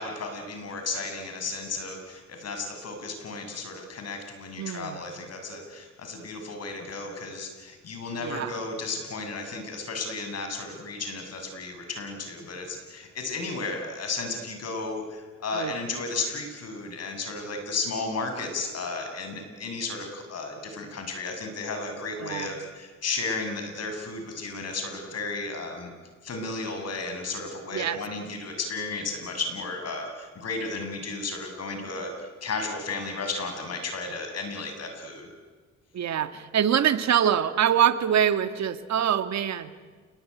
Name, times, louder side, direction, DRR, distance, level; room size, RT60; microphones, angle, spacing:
voice 1, 0.0-25.9 26.2-35.3, left 3 dB, 55° left, 5 dB, 7.3 m, -34 dB
voice 2, 4.6-5.0 8.2-8.5 15.5-15.7 22.2-22.5 27.7-28.0 35.9-39.7, right 9 dB, 60° right, 10 dB, 2.0 m, -24 dB
29.0 x 20.0 x 9.8 m, 1.4 s
cardioid pair, 90°, 30 cm